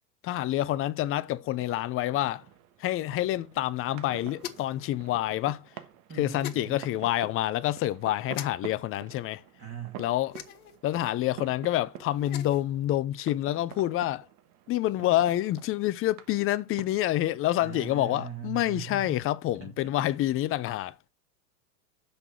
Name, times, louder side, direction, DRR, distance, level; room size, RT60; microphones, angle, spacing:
voice 1, 0.2-2.5 2.8-5.7 6.2-9.4 10.0-10.4 10.8-14.3 14.7-21.1, left 14 dB, 30° left, 0.6 m, -28 dB
sound 1, 1.2-20.5, right 11 dB, 45° right, 1.4 m, -49 dB
sound 2, 4.4-4.8 6.4-6.6 8.3-8.5 10.3-10.8 12.1-12.6, left 10 dB, 70° left, 1.4 m, -40 dB
voice 2, 6.1-6.8 9.6-10.0 17.6-19.1 19.6-20.1, right 6 dB, 30° right, 2.7 m, -40 dB
6.7 x 6.0 x 6.9 m
hypercardioid pair, 100°, 46 cm